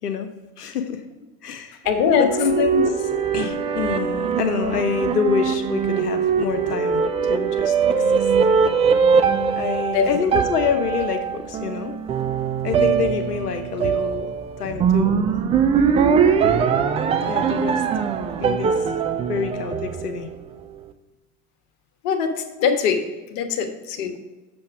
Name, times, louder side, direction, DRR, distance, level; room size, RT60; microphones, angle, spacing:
voice 1, 0.6-1.0 1.4-1.8 2.2-7.0 7.3-7.7 9.6-11.9 12.6-15.3 17.3-17.8 18.4-18.8 19.3-20.3, left 6 dB, 80° left, 7 dB, 0.9 m, -26 dB
voice 2, 1.8-2.3 9.9-10.1 22.0-22.3 22.6-23.0 23.3-24.2, left 7 dB, 55° left, 5 dB, 1.4 m, -20 dB
sound 1, 1.9-20.4, right 6 dB, 15° right, 0.3 m, -22 dB
7.5 x 6.9 x 4.5 m, 1.2 s
figure-of-eight pair, 75°, 46 cm